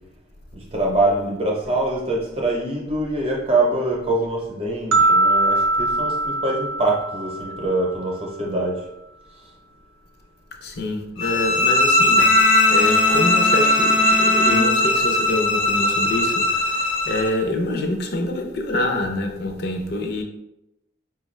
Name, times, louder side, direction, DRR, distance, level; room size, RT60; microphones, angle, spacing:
voice 1, 0.5-8.8, right 2 dB, 30° right, 0.7 m, -24 dB
sound 1, 4.9-8.0, right 2 dB, 90° right, 0.4 m, -21 dB
voice 2, 10.6-20.2, left 2 dB, 50° left, 0.5 m, -26 dB
sound 2, 11.2-17.3, left 2 dB, 75° left, 0.9 m, -19 dB
Bowed string instrument, 12.2-15.5, left 2 dB, ahead, 0.4 m, -26 dB
4.8 x 2.3 x 3.1 m
head